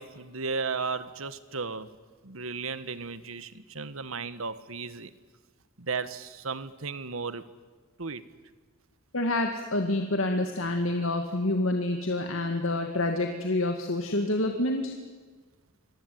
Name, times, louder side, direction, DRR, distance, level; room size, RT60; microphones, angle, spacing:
voice 1, 0.0-1.9 2.2-5.1 5.8-7.4 8.0-8.2, right 4 dB, 85° right, 14 dB, 1.5 m, -35 dB
voice 2, 9.1-14.9, left 2 dB, 80° left, 4 dB, 2.2 m, -27 dB
27.0 x 23.0 x 9.5 m, 1.4 s
head